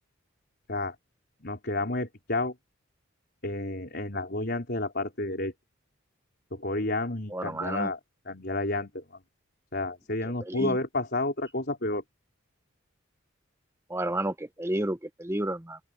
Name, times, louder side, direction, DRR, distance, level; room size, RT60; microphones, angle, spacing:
voice 1, 1.4-2.5 3.4-5.5 6.5-8.0 8.3-9.0 9.7-12.0, left 2 dB, 50° left, 4.3 m, -30 dB
voice 2, 7.3-7.9 10.2-10.8 13.9-15.8, right 1 dB, 10° right, 0.8 m, -31 dB
open air
head